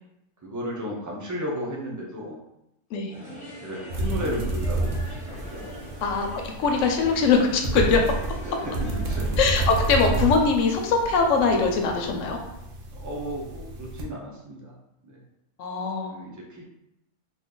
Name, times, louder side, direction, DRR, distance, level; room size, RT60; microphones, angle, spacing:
voice 1, 0.4-2.4 3.1-5.8 8.4-9.3 12.9-14.7 15.0-15.2 16.1-16.6, equal, 25° right, -3 dB, 0.4 m, -34 dB
sound 1, 3.1-10.4, left 1 dB, 5° left, 0.8 m, -43 dB
sound 2, 3.9-14.0, right 2 dB, 80° right, 1.0 m, -30 dB
voice 2, 6.6-8.0 9.4-12.4 15.6-16.2, left 5 dB, 85° left, 2 dB, 1.0 m, -22 dB
2.8 x 2.5 x 3.7 m, 0.86 s
omnidirectional pair, 1.3 m